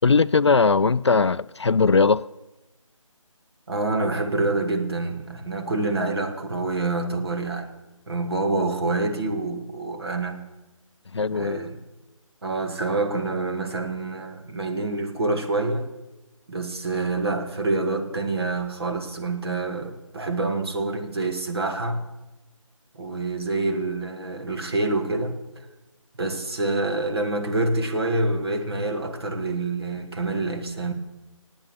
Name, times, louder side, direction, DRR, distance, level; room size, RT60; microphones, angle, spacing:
voice 1, 0.0-2.3 11.1-11.6, left 4 dB, 55° left, 0.4 m, -19 dB
voice 2, 3.7-7.7 8.1-10.4 11.3-11.8 12.4-15.9 16.5-22.1 22.9-25.4 26.2-30.9, right 2 dB, 50° right, 2.0 m, -27 dB
17.5 x 8.9 x 7.1 m
figure-of-eight pair, 155°, 17 cm